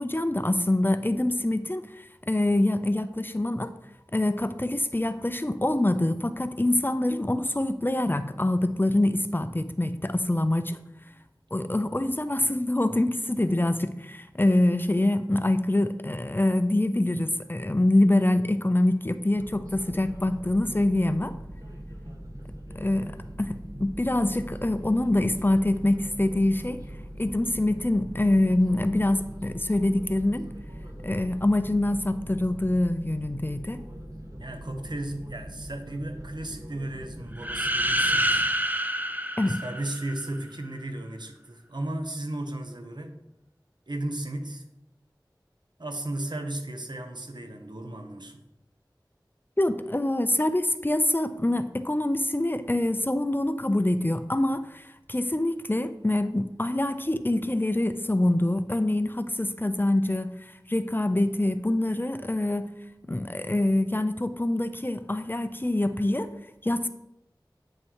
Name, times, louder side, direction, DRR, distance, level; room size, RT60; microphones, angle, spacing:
voice 1, 0.0-3.7 4.1-10.8 11.5-21.3 22.7-26.8 27.2-30.5 31.0-33.8 39.4-39.6 49.6-62.7 63.1-66.3 66.6-66.9, left 1 dB, 25° left, 0.6 m, -25 dB
sound 1, 19.3-38.5, equal, 45° right, 1.5 m, -41 dB
voice 2, 34.4-38.4 39.5-43.2 43.9-44.6 45.8-48.4, right 1 dB, 65° right, 1.3 m, -35 dB
sound 2, 37.4-40.3, right 1 dB, 20° right, 0.7 m, -27 dB
9.0 x 6.5 x 4.7 m
wide cardioid pair, 45°, 8 cm